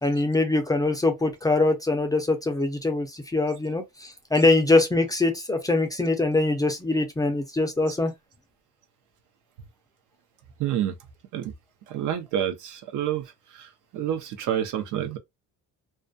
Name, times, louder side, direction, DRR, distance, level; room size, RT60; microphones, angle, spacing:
voice 1, 0.0-8.1, left 2 dB, 10° left, 0.4 m, -23 dB
voice 2, 10.6-10.9 11.3-11.5 11.9-13.2 13.9-15.2, right 10 dB, 75° right, 0.6 m, -28 dB
2.3 x 2.2 x 2.5 m
cardioid pair, 135°, 31 cm